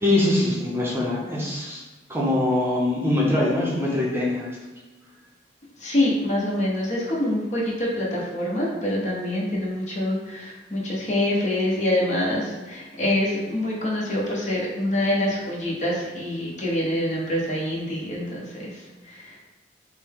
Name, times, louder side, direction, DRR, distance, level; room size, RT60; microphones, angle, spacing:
voice 1, 0.0-1.8 2.1-4.6, left 1 dB, 15° right, -4 dB, 0.7 m, -23 dB
voice 2, 5.8-19.5, left 1 dB, 45° left, -4 dB, 1.1 m, -26 dB
5.9 x 2.2 x 3.6 m, 1.2 s
head